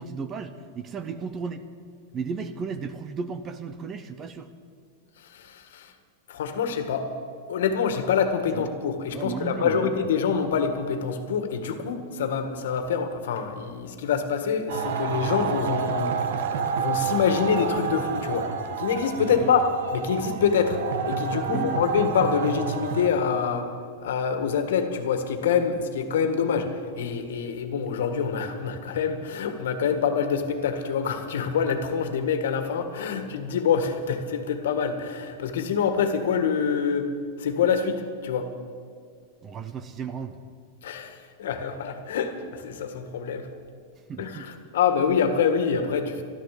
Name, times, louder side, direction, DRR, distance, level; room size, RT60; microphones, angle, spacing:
voice 1, 0.0-1.7 2.1-4.5 8.5-8.7 9.1-10.1 19.2-19.6 21.4-21.8 39.4-40.4 44.1-44.5, right 5 dB, 15° right, 11 dB, 0.6 m, -34 dB
voice 2, 5.3-5.9 6.3-7.0 7.5-16.1 16.7-18.5 18.8-20.8 21.0-23.7 24.0-37.1 37.4-38.5 40.8-43.5 44.2-46.2, left 6 dB, 80° left, 7 dB, 1.7 m, -26 dB
sound 1, 14.7-23.1, right 6 dB, 65° right, 1.2 m, -29 dB
13.5 x 13.0 x 7.7 m, 2.2 s
supercardioid pair, 175°, 0 cm